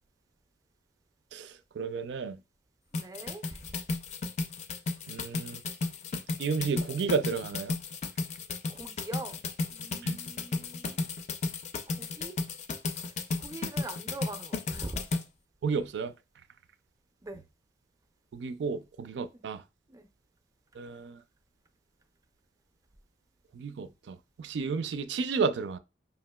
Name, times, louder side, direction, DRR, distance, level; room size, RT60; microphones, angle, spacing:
voice 1, 1.3-2.4 5.1-5.6 6.4-7.8 10.0-10.2 15.6-16.1 18.3-19.6 20.8-21.2 23.5-25.8, right 5 dB, 85° right, 0.4 m, -32 dB
sound 1, 2.9-15.2, left 3 dB, 40° left, 0.4 m, -34 dB
voice 2, 2.9-3.6 8.7-9.4 9.7-11.1 11.9-12.3 12.9-13.1 13.4-15.0 17.2-17.4 19.9-20.1, right 2 dB, 20° right, 0.5 m, -42 dB
5.4 x 2.8 x 2.2 m
head